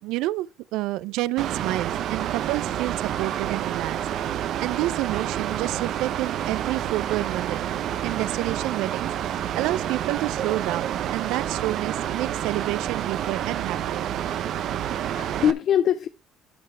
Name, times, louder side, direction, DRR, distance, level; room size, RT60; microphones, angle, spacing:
voice 1, 0.0-4.0 4.3-7.7 8.0-14.1, right 17 dB, 75° right, 0.5 m, -29 dB
Mechanical fan, 1.4-15.5, right 10 dB, 60° right, 0.9 m, -29 dB
voice 2, 14.7-16.1, left 9 dB, 55° left, 0.7 m, -24 dB
12.0 x 5.7 x 4.5 m
supercardioid pair, 95°, 0 cm